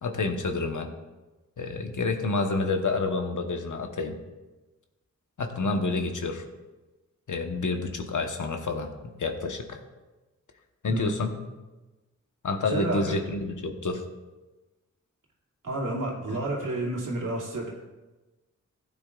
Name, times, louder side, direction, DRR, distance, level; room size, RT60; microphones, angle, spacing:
voice 1, 0.0-0.9 1.6-4.2 5.4-6.4 7.3-9.8 10.8-11.3 12.4-14.0 16.3-16.4, left 3 dB, 75° left, 4 dB, 1.2 m, -29 dB
voice 2, 12.7-13.2 15.6-17.7, right 1 dB, 80° right, -3 dB, 2.5 m, -30 dB
15.0 x 8.9 x 2.4 m, 1.1 s
cardioid pair, 50°, 31 cm